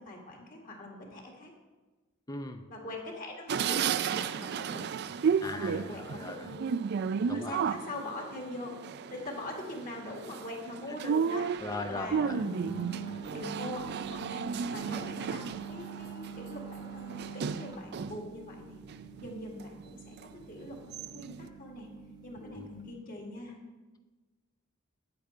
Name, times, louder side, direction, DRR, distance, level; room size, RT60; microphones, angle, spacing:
voice 1, 0.0-1.5 2.7-4.9 5.4-6.7 7.3-8.8 9.1-11.5 11.9-12.3 13.3-18.8 19.2-20.2 20.5-21.9 22.2-23.5, left 2 dB, 40° left, 0 dB, 2.0 m, -42 dB
voice 2, 2.3-2.6 5.4-6.4 7.2-7.5 11.6-12.4 22.4-22.7, left 2 dB, 15° left, 7 dB, 0.5 m, -39 dB
sound 1, 3.5-18.3 18.7-19.7 20.2-20.3 20.6-21.4, right 6 dB, 50° right, 0.3 m, -33 dB
sound 2, 12.1-22.9, right 6 dB, 20° right, 1.1 m, -45 dB
9.4 x 8.6 x 4.4 m, 1.2 s
head